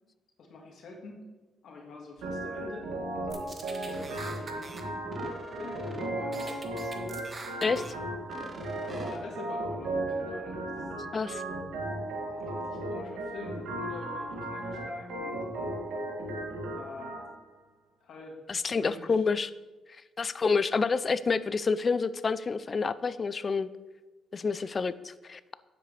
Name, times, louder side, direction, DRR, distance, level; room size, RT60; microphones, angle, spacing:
voice 1, 0.4-1.2 1.6-2.9 3.4-5.0 5.6-6.7 7.6-8.0 8.8-10.9 12.2-15.4 16.7-17.2 18.0-19.2 24.5-24.7, left 3 dB, 65° left, 1 dB, 1.7 m, -46 dB
Organ, 2.2-17.2, right 1 dB, 90° right, 2.2 m, -35 dB
sound 1, 3.3-4.8 5.1-6.1 6.3-7.9 8.3-9.2, right 2 dB, 35° right, 1.1 m, -43 dB
voice 2, 18.5-19.5 20.2-23.7 24.3-25.5, left 4 dB, 35° left, 15 dB, 0.4 m, -28 dB
9.5 x 7.7 x 3.3 m, 1.2 s
cardioid pair, 90°, 0 cm